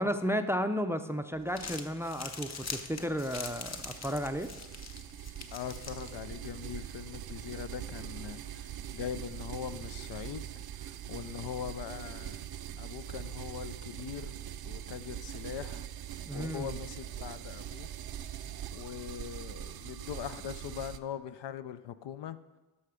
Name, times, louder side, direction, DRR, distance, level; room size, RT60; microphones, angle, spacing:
voice 1, 0.0-4.5 16.3-16.8, equal, 5° right, 9 dB, 0.4 m, -33 dB
Crumpling crinkling, 1.3-6.6, left 4 dB, 40° left, 0.9 m, -44 dB
sound 1, 2.9-21.0, right 10 dB, 60° right, 0.5 m, -42 dB
voice 2, 5.5-10.5 10.8-12.4 12.8-14.3 14.6-15.9 16.3-17.9 18.7-22.4, left 9 dB, 80° left, 13 dB, 0.6 m, -41 dB
13.0 x 5.7 x 5.0 m, 1.2 s
cardioid pair, 105°, 42 cm